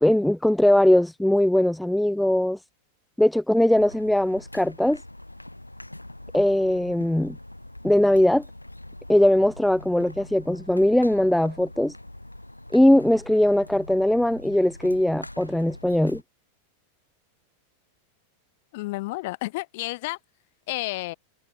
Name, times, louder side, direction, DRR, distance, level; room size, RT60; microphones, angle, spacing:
voice 1, 0.0-2.6 3.2-5.0 6.3-7.4 7.8-8.4 9.1-11.9 12.7-16.2, left 1 dB, 5° left, 0.3 m, -20 dB
sound 1, 3.7-16.2, left 1 dB, 85° left, 4.7 m, -43 dB
voice 2, 18.7-20.2 20.7-21.1, left 21 dB, 50° left, 1.4 m, -31 dB
figure-of-eight pair, 90°, 0 cm